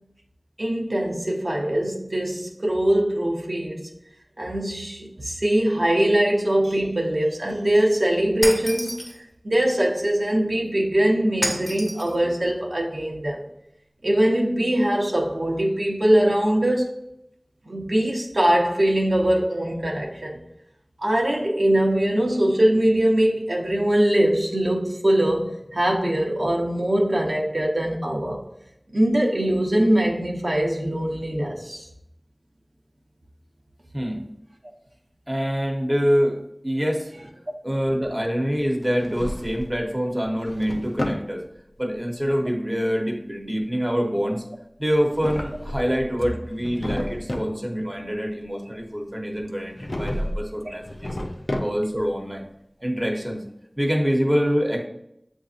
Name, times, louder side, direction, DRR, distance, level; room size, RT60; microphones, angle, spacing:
voice 1, 0.6-3.9 4.4-9.0 9.4-13.4 14.0-16.9 17.7-20.4 21.0-28.4 28.9-31.9 50.6-50.7, right 1 dB, 70° right, -1 dB, 0.8 m, -22 dB
Shatter, 8.4-9.2 11.4-12.1, equal, 30° left, 1.0 m, -29 dB
voice 2, 35.3-37.1 37.6-41.4 41.8-44.4 44.8-51.2 51.6-52.5 52.8-53.4 53.8-54.9, equal, 15° right, 1 dB, 0.9 m, -25 dB
Drawer open or close, 38.8-39.8 40.2-41.3 44.9-46.1 46.4-47.6 49.7-50.4 50.8-52.0, left 1 dB, 75° left, 0.5 m, -31 dB
7.7 x 2.7 x 2.4 m, 0.79 s
wide cardioid pair, 40°, 0 cm